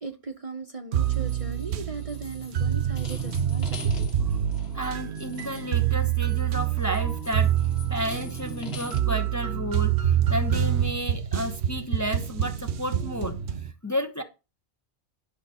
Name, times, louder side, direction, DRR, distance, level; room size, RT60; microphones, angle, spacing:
voice 1, 0.0-4.1, right 4 dB, 35° right, 0.8 m, -38 dB
sound 1, 0.9-13.7, right 10 dB, 75° right, 1.0 m, -27 dB
sound 2, 1.0-9.0, left 2 dB, 65° left, 1.8 m, -43 dB
voice 2, 4.7-7.5 7.9-13.4 13.6-14.2, equal, 15° left, 0.9 m, -32 dB
11.0 x 6.8 x 4.3 m
omnidirectional pair, 1.1 m